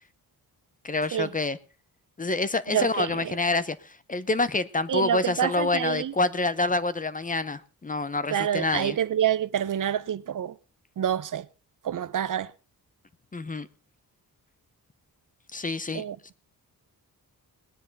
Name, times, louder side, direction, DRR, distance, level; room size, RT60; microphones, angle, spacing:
voice 1, 0.8-1.6 2.2-3.8 4.1-9.0 13.3-13.7 15.5-16.0, left 3 dB, 20° left, 0.7 m, -27 dB
voice 2, 2.7-3.4 4.9-6.1 8.3-10.6 11.0-11.5 11.8-12.5 15.9-16.2, right 10 dB, 55° right, 0.7 m, -27 dB
19.5 x 10.0 x 4.0 m
wide cardioid pair, 160°, 37 cm